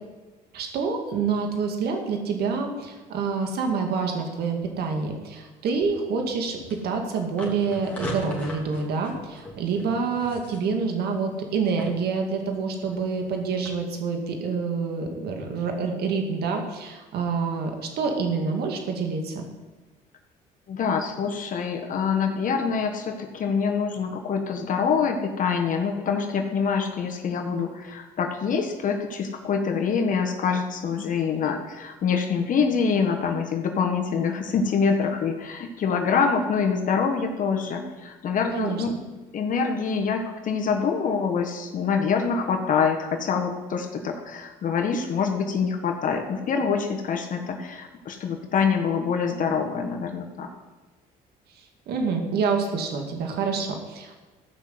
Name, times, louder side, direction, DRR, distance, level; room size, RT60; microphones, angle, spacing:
voice 1, 0.5-19.5 38.5-39.0 51.9-54.2, right 5 dB, 70° right, 3 dB, 2.2 m, -27 dB
sound 1, 5.8-13.7, left 1 dB, 10° left, 3.4 m, -41 dB
voice 2, 20.7-39.0 39.3-50.5, left 6 dB, 50° left, 3 dB, 1.6 m, -25 dB
14.0 x 6.0 x 7.8 m, 1.2 s
cardioid pair, 110°, 17 cm